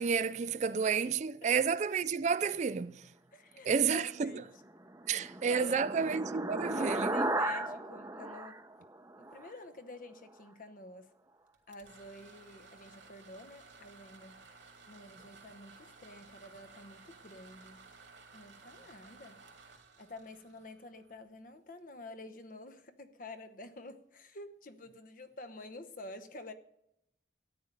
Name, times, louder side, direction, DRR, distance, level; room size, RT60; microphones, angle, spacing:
voice 1, 0.0-3.0 3.7-4.3 5.1-7.1, right 6 dB, 40° right, 0.3 m, -30 dB
voice 2, 3.3-4.6 5.1-5.9 6.7-8.6 9.2-11.1 11.7-14.4 14.9-17.9 18.3-19.4 20.0-26.5, left 2 dB, 50° left, 1.0 m, -49 dB
sound 1, 4.7-9.5, right 1 dB, 15° right, 0.7 m, -35 dB
sound 2, 11.5-21.3, right 4 dB, 90° right, 2.9 m, -57 dB
13.5 x 9.6 x 5.3 m
head